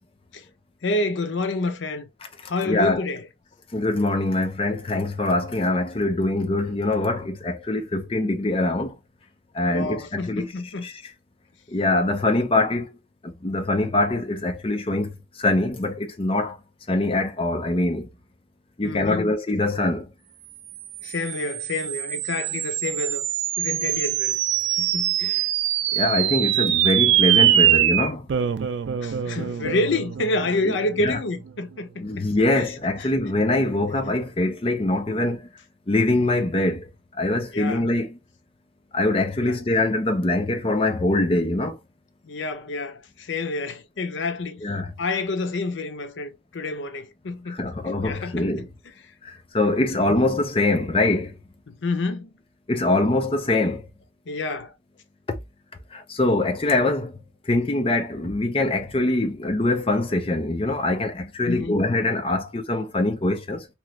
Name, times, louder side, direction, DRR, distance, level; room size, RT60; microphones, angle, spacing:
voice 1, 0.8-2.1 2.5-3.3 9.7-10.9 18.8-19.3 21.0-23.2 23.6-24.4 24.8-25.5 29.0-32.2 32.5-32.7 33.0-33.1 37.5-37.9 39.4-39.6 42.2-44.6 45.0-47.7 48.0-48.7 51.7-52.3 54.3-54.7 61.4-61.7, left 2 dB, 90° left, 0.6 m, -28 dB
voice 2, 2.6-3.0 3.7-9.0 9.5-10.5 10.8-11.1 11.7-12.9 13.2-15.1 15.4-16.6 16.9-18.1 18.8-20.1 25.9-28.3 31.0-31.2 32.0-35.5 35.9-36.9 37.2-38.2 38.9-41.8 44.6-44.9 47.5-48.7 49.2-51.3 52.7-53.8 55.9-57.1 57.5-63.7, left 2 dB, 30° left, 0.5 m, -23 dB
sound 1, 20.8-31.5, right 11 dB, 80° right, 0.3 m, -23 dB
3.0 x 2.4 x 3.0 m
head